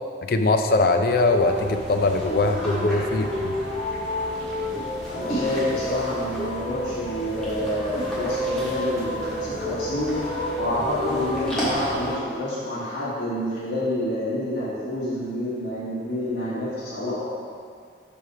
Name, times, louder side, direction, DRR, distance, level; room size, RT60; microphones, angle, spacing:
voice 1, 0.3-3.6, left 2 dB, 50° left, 6 dB, 0.4 m, -21 dB
sound 1, 1.1-12.2, equal, 5° left, 1.6 m, -29 dB
voice 2, 5.0-10.1 10.6-17.2, left 1 dB, 85° left, -13 dB, 1.7 m, -28 dB
5.3 x 4.8 x 5.7 m, 2.2 s
head